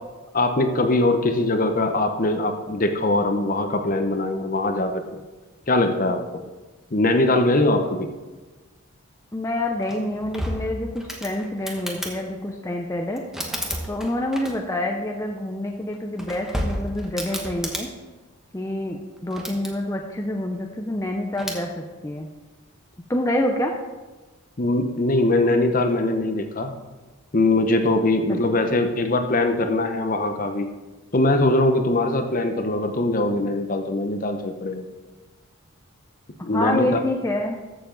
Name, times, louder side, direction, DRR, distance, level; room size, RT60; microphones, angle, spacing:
voice 1, 0.3-5.2 5.7-6.2 6.9-8.1 24.6-26.7 27.3-30.7 31.1-34.8 36.4-37.0, left 2 dB, 40° left, 7 dB, 0.8 m, -21 dB
voice 2, 9.3-13.2 13.9-17.9 18.5-22.3 23.1-23.7 28.3-28.4 36.4-37.6, left 1 dB, 15° left, 2 dB, 0.5 m, -27 dB
sound 1, 9.8-12.2 13.1-14.8 15.9-17.9 19.2-19.7 21.3-21.6, equal, ahead, 1.0 m, -32 dB
14.0 x 6.9 x 3.9 m, 1.2 s
head